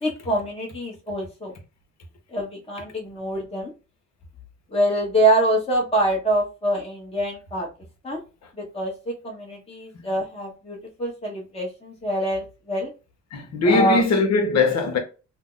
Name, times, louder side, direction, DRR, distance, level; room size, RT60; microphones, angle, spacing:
voice 1, 0.0-1.5 2.3-3.7 4.7-7.7 8.0-8.2 8.5-12.9 13.6-14.0, right 1 dB, 20° left, 1.1 m, -25 dB
voice 2, 13.3-15.0, left 3 dB, 60° left, 1.1 m, -20 dB
2.8 x 2.2 x 3.8 m
cardioid pair, 90°, 30 cm